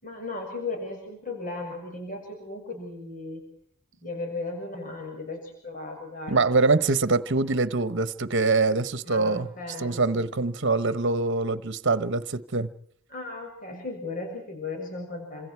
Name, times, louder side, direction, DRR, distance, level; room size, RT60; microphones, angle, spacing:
voice 1, 0.0-3.4 4.0-6.4 9.0-10.3 13.1-15.5, left 3 dB, 40° left, 3 dB, 6.8 m, -36 dB
voice 2, 6.3-9.5 9.8-12.7, right 3 dB, 60° right, 13 dB, 1.1 m, -24 dB
28.5 x 26.5 x 4.7 m, 0.66 s
head